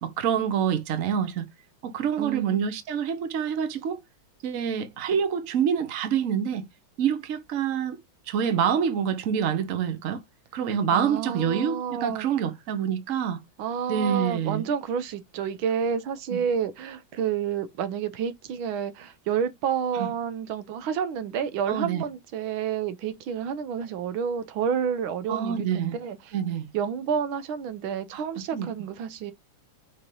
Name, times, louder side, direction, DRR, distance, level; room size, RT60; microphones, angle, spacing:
voice 1, 0.0-1.4 1.8-4.0 4.4-6.7 7.0-8.0 8.3-10.2 10.5-13.4 13.9-14.7 16.3-16.4 19.9-20.1 21.7-22.0 25.3-26.0 26.3-26.7 28.1-28.2 28.5-28.7, right 8 dB, 50° right, 1.1 m, -26 dB
voice 2, 2.2-2.6 10.9-12.3 13.6-26.3 26.7-29.3, right 7 dB, 85° right, 1.6 m, -29 dB
6.6 x 3.1 x 5.3 m
omnidirectional pair, 2.2 m